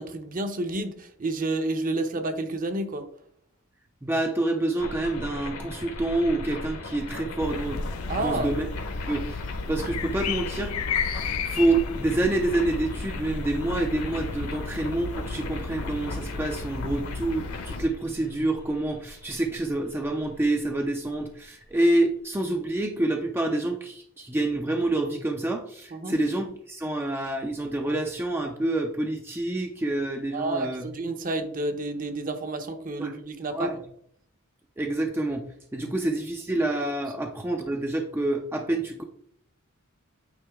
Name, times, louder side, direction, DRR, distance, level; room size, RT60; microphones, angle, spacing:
voice 1, 0.0-3.1 8.1-8.5 11.2-11.3 25.9-26.2 30.3-33.8, right 2 dB, 40° right, 7 dB, 0.8 m, -30 dB
voice 2, 4.0-7.8 8.2-8.7 9.1-9.4 9.7-10.8 11.5-30.9 33.0-33.1 33.5-33.7 34.8-35.5 35.7-39.0, right 2 dB, 10° right, 3 dB, 0.5 m, -27 dB
sound 1, 4.8-21.7, left 2 dB, 70° left, 1.4 m, -38 dB
sound 2, 7.4-17.9, left 5 dB, 85° left, 0.6 m, -34 dB
8.8 x 3.9 x 3.5 m, 0.67 s
head